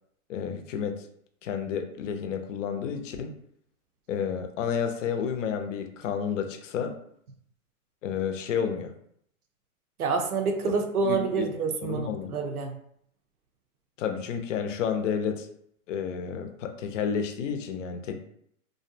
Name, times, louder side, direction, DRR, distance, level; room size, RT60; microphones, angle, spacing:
voice 1, 0.3-1.0 1.4-3.3 4.1-6.9 8.0-8.9 11.0-11.5 11.8-12.3 14.0-15.5 15.9-18.2, left 7 dB, 60° left, 6 dB, 0.5 m, -30 dB
voice 2, 10.0-12.7, right 4 dB, 90° right, 4 dB, 0.6 m, -27 dB
2.5 x 2.1 x 2.5 m, 0.69 s
hypercardioid pair, 130°, 43 cm